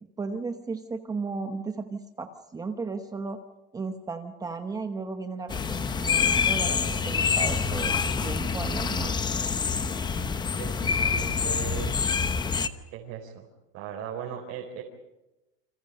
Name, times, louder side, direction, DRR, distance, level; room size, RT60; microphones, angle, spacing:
voice 1, 0.2-3.4 3.7-7.9 8.2-9.2, right 4 dB, 10° right, 6 dB, 1.0 m, -35 dB
sound 1, 5.5-12.7, left 5 dB, 15° left, 0.9 m, -26 dB
voice 2, 10.6-11.9 12.9-13.5 13.7-14.8, right 8 dB, 50° right, 0 dB, 4.2 m, -38 dB
29.0 x 26.0 x 5.4 m, 1.0 s
supercardioid pair, 160°, 30 cm